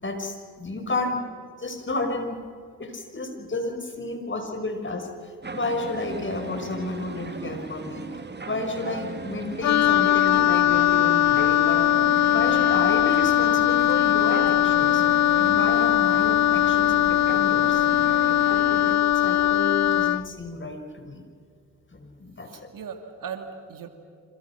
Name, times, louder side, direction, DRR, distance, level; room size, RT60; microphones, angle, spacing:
voice 1, 0.0-1.2 1.6-2.4 2.8-8.0 8.5-11.9 12.3-15.1 15.3-17.9 18.5-21.2 21.9-22.7, left 2 dB, 30° left, 5 dB, 5.6 m, -31 dB
sound 1, 5.4-19.0, right 3 dB, 30° right, 2.2 m, -37 dB
Wind instrument woodwind instrument, 9.6-20.3, left 12 dB, 50° left, 0.5 m, -20 dB
voice 2, 22.5-23.9, right 7 dB, 60° right, 6 dB, 2.7 m, -38 dB
28.0 x 26.5 x 6.0 m, 2.3 s
hypercardioid pair, 45°, 36 cm